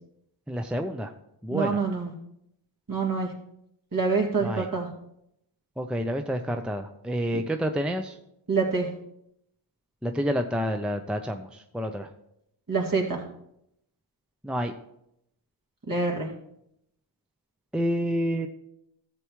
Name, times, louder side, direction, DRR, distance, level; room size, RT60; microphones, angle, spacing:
voice 1, 0.5-1.1 1.4-1.8 4.4-4.7 5.8-8.2 10.0-12.1 14.4-14.7 17.7-18.5, equal, ahead, 6 dB, 0.6 m, -29 dB
voice 2, 1.5-2.1 2.9-3.3 3.9-4.9 7.3-7.4 8.5-8.9 12.7-13.2 15.9-16.3, right 4 dB, 45° right, -2 dB, 2.4 m, -26 dB
13.5 x 7.1 x 3.1 m, 0.77 s
cardioid pair, 55°, 46 cm